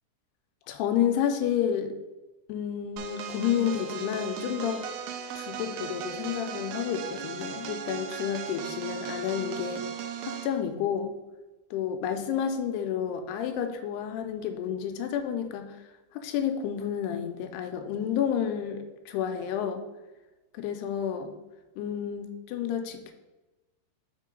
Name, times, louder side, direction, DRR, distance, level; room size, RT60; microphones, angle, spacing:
voice 1, 0.7-1.9 2.5-4.8 5.4-9.9 10.2-11.1 11.7-15.8 16.1-19.8 20.5-21.3 21.8-23.1, left 9 dB, 85° left, 6 dB, 2.6 m, -30 dB
sound 1, 3.0-10.6, right 8 dB, 80° right, 2.2 m, -37 dB
6.2 x 3.7 x 5.1 m, 1.1 s
omnidirectional pair, 4.7 m